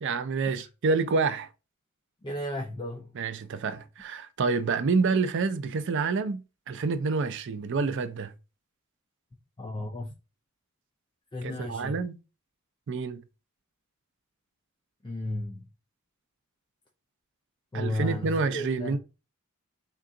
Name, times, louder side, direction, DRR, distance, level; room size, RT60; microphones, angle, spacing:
voice 1, 0.0-1.5 3.2-8.3 11.4-12.1 12.9-13.2 17.7-19.0, right 4 dB, 55° right, 0.4 m, -28 dB
voice 2, 2.2-3.2 9.6-10.1 11.3-12.0 15.0-15.7 17.7-19.0, left 1 dB, 20° left, 0.4 m, -34 dB
3.7 x 2.3 x 3.7 m
head